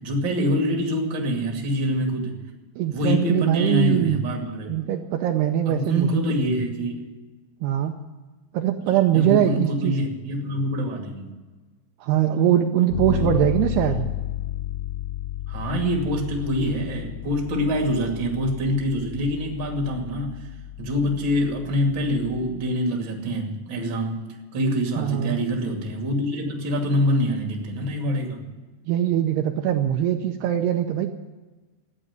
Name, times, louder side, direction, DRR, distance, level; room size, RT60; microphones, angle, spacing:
voice 1, 0.0-2.4 2.9-4.7 5.7-7.0 9.1-11.3 13.0-13.4 13.7-13.9 15.5-20.5 20.8-28.4, equal, 35° right, 1 dB, 2.5 m, -25 dB
voice 2, 2.8-4.2 4.7-6.4 7.6-8.0 8.5-9.9 12.0-14.1 25.0-25.4 28.9-31.1, right 11 dB, 80° right, 5 dB, 2.6 m, -22 dB
Bass guitar, 12.9-22.7, left 12 dB, 85° left, 3.7 m, -33 dB
14.0 x 10.0 x 9.5 m, 1.3 s
omnidirectional pair, 4.9 m